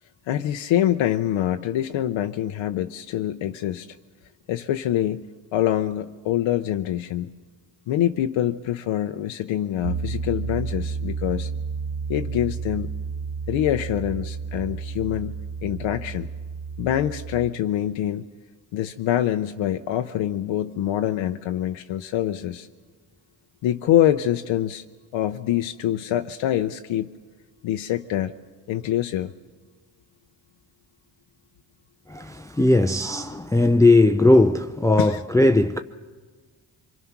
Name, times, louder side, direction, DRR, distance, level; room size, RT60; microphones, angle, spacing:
voice 1, 0.3-3.9 4.5-7.3 7.9-11.5 12.1-13.0 13.5-16.3 16.8-18.2 18.7-22.7 23.6-24.8 25.1-27.1 27.6-28.3 28.7-29.3 35.0-35.2, left 12 dB, 80° left, 0.7 m, -25 dB
Piano, 9.8-17.5, right 5 dB, 50° right, 1.4 m, -31 dB
voice 2, 32.1-35.8, left 2 dB, 5° left, 0.6 m, -18 dB
24.5 x 24.0 x 5.9 m
cardioid pair, 75°, 46 cm